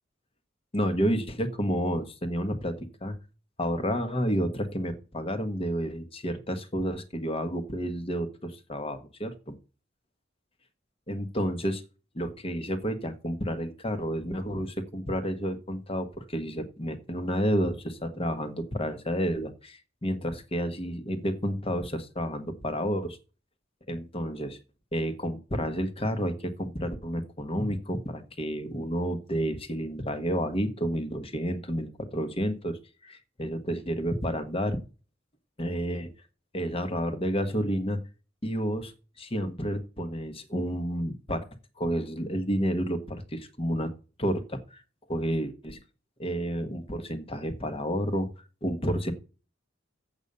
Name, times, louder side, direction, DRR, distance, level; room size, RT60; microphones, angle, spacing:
voice 1, 0.7-3.1 3.6-9.5 11.1-11.8 12.1-23.2 23.9-24.6 24.9-34.8 35.6-36.1 36.5-38.0 38.4-38.9 39.2-41.4 41.8-43.9 44.2-44.8 45.1-45.8 46.2-49.1, equal, 30° left, 9 dB, 1.3 m, -30 dB
8.1 x 6.9 x 6.6 m, 0.35 s
head